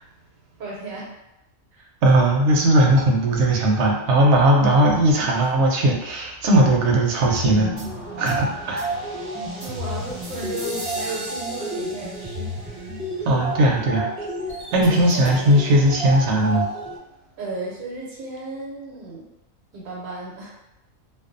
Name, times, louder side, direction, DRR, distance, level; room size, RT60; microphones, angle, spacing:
voice 1, 0.6-1.0 1.7-1.8 9.6-12.8 13.2-13.3 17.4-19.3 19.7-20.5, right 2 dB, 85° right, -5 dB, 1.0 m, -34 dB
voice 2, 2.0-7.7 8.2-8.9 13.2-14.1 14.7-16.7, right 1 dB, 65° right, 0 dB, 0.8 m, -18 dB
sound 1, 7.3-17.0, right 1 dB, 10° left, 0.8 m, -31 dB
2.4 x 2.2 x 2.5 m, 0.91 s
omnidirectional pair, 1.4 m